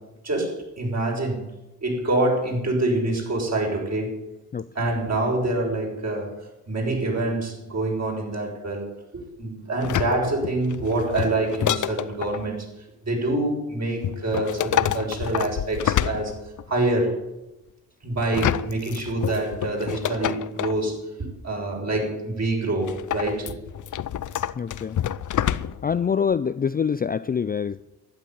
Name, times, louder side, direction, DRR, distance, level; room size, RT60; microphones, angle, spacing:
voice 1, 0.2-1.5 1.8-4.2 4.7-6.3 6.7-8.9 9.1-12.6 13.1-16.4 16.7-17.2 18.0-21.0 21.4-23.5, right 2 dB, 40° right, 0 dB, 6.7 m, -26 dB
sound 1, 9.8-12.5 14.0-16.8 18.2-20.8 22.9-26.0 26.3-26.4, left 10 dB, 50° left, 0.8 m, -28 dB
voice 2, 24.6-25.0 25.8-27.8, left 7 dB, 25° left, 14 dB, 0.4 m, -25 dB
12.0 x 10.5 x 9.4 m, 1.0 s
cardioid pair, 80°, 39 cm